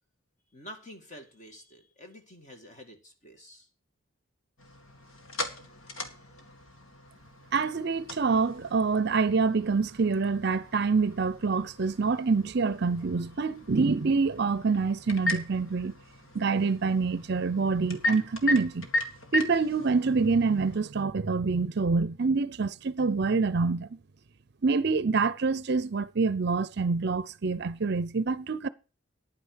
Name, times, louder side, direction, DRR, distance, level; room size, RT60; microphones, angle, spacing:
voice 1, 0.5-3.7, left 1 dB, 35° left, 2.3 m, -48 dB
sound 1, 4.6-20.9, left 1 dB, 70° left, 2.1 m, -38 dB
voice 2, 7.5-15.9 16.3-18.9 19.3-23.9 24.6-28.7, right 4 dB, 50° right, 0.6 m, -26 dB
10.0 x 9.2 x 6.3 m
head